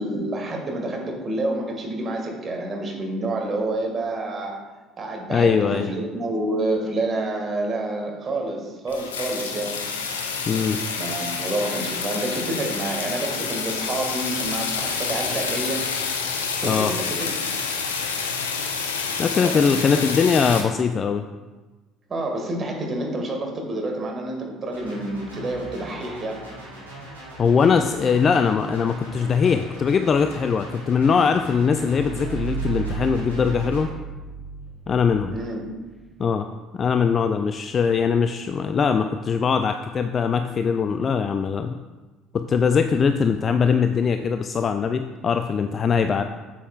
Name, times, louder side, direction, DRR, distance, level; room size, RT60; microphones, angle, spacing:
voice 1, 0.0-4.6 5.0-9.8 11.0-15.9 16.6-17.3 19.4-19.6 19.9-20.0 22.1-26.4 35.3-35.6, right 2 dB, 35° right, 1 dB, 1.8 m, -28 dB
voice 2, 5.3-5.9 10.5-10.8 16.6-16.9 19.2-21.2 27.4-33.9 34.9-35.3 36.2-36.5 36.7-41.7 42.3-46.2, left 6 dB, 35° left, 8 dB, 0.3 m, -21 dB
sound 1, 8.9-20.6, left 5 dB, 75° left, 0.6 m, -28 dB
sound 2, 24.7-33.9, equal, 85° right, 1.6 m, -40 dB
sound 3, 31.7-36.2, right 8 dB, 5° left, 0.7 m, -34 dB
8.2 x 7.3 x 2.4 m, 1.2 s
figure-of-eight pair, 55°, 0 cm